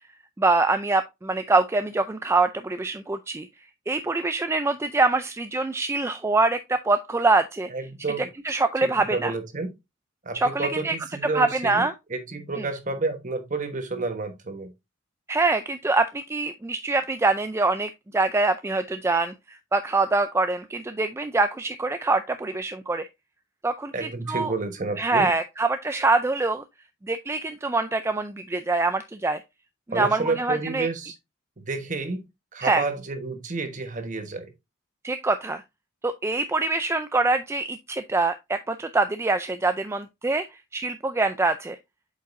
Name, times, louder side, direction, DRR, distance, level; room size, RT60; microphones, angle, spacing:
voice 1, 0.4-3.5 3.9-7.7 8.4-9.3 10.3-11.0 11.3-11.9 12.6-12.7 15.3-23.1 23.6-24.5 25.0-26.6 27.1-29.4 29.9-30.9 32.6-32.8 35.0-35.6 36.0-40.5 40.7-41.8, right 3 dB, 15° right, 0.3 m, -24 dB
voice 2, 7.7-8.3 8.8-9.7 10.2-14.7 23.9-25.3 29.9-31.1 31.6-32.2 32.5-34.5, right 3 dB, 40° right, 1.2 m, -30 dB
7.9 x 5.2 x 2.5 m
head